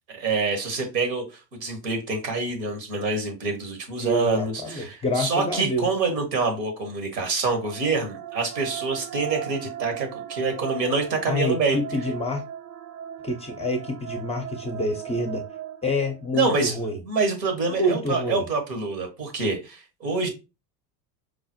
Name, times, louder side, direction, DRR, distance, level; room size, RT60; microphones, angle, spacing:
voice 1, 0.1-11.8 16.3-16.8 17.1-20.3, right 4 dB, 85° right, 1.1 m, -26 dB
voice 2, 4.0-5.9 11.3-12.4 13.2-15.4 15.8-17.0 17.7-18.5, left 1 dB, 15° left, 0.4 m, -27 dB
sound 1, 7.4-16.6, right 9 dB, 60° right, 0.5 m, -37 dB
4.7 x 2.0 x 2.7 m
hypercardioid pair, 80°, 48 cm